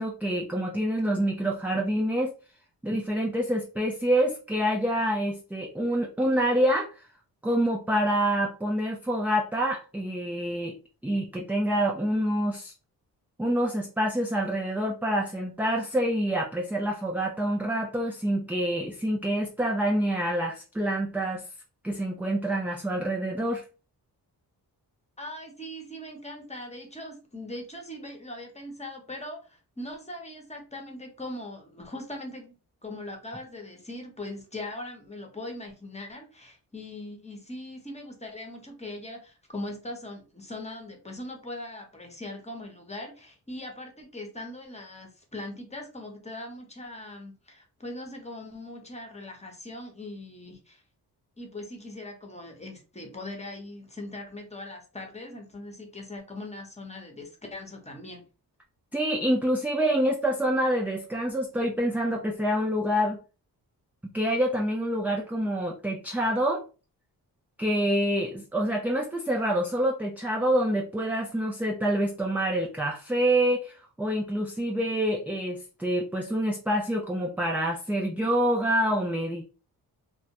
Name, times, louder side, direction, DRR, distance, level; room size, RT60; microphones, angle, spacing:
voice 1, 0.0-2.3 2.8-6.9 7.4-10.8 11.0-12.7 13.4-21.4 21.8-23.6 58.9-63.2 64.0-66.6 67.6-79.4, right 1 dB, 5° right, 0 dB, 0.4 m, -27 dB
voice 2, 25.2-32.5 32.8-50.8 51.4-58.2, left 1 dB, 15° left, 3 dB, 0.9 m, -40 dB
2.2 x 2.0 x 2.8 m, 0.33 s
cardioid pair, 55°, 41 cm